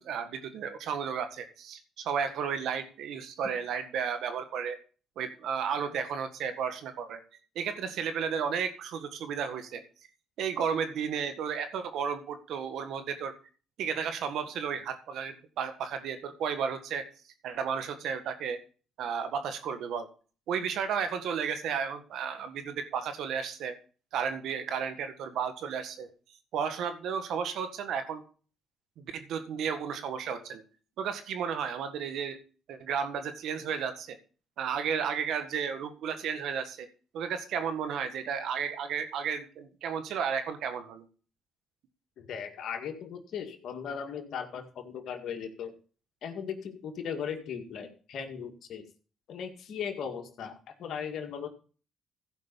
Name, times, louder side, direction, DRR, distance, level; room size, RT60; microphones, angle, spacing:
voice 1, 0.0-4.8 5.2-7.2 7.5-9.8 10.4-13.3 13.8-17.0 17.4-18.6 19.0-20.1 20.5-23.7 24.1-26.1 26.5-28.2 29.0-30.6 31.0-32.4 32.7-34.2 34.6-36.9 37.1-41.0, right 7 dB, 75° right, 9 dB, 1.6 m, -33 dB
voice 2, 42.2-45.7 46.2-48.9 49.3-51.5, left 7 dB, 70° left, 4 dB, 2.0 m, -38 dB
15.5 x 5.4 x 5.5 m, 0.39 s
supercardioid pair, 70°, 0 cm